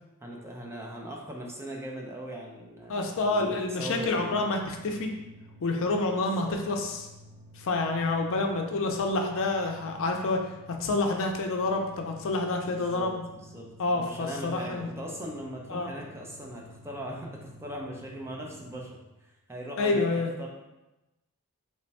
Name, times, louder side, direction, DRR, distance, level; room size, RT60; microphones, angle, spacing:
voice 1, 0.2-4.4 6.2-6.6 12.7-13.7 13.9-19.0 19.5-20.5, right 1 dB, 10° right, -1 dB, 0.5 m, -40 dB
voice 2, 2.9-5.1 5.6-7.0 7.6-13.2 13.8-14.9 15.7-15.9 19.8-20.3, left 2 dB, 60° left, 3 dB, 0.4 m, -28 dB
sound 1, 2.9-19.0, equal, 75° right, 0.9 m, -52 dB
3.2 x 2.2 x 4.0 m, 1.0 s
head